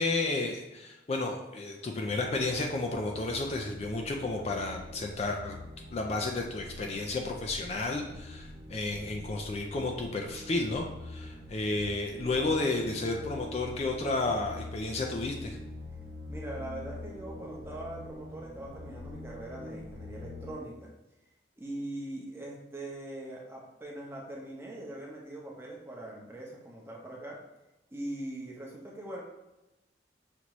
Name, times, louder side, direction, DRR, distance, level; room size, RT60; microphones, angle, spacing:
voice 1, 0.0-5.6 5.9-15.6, left 2 dB, 35° left, 2 dB, 0.3 m, -32 dB
sound 1, 2.0-20.6, left 2 dB, 40° right, 0.9 m, -45 dB
voice 2, 16.3-20.9 21.6-27.4 27.9-29.2, right 1 dB, 15° right, -3 dB, 0.8 m, -41 dB
5.9 x 2.7 x 3.0 m, 0.99 s
head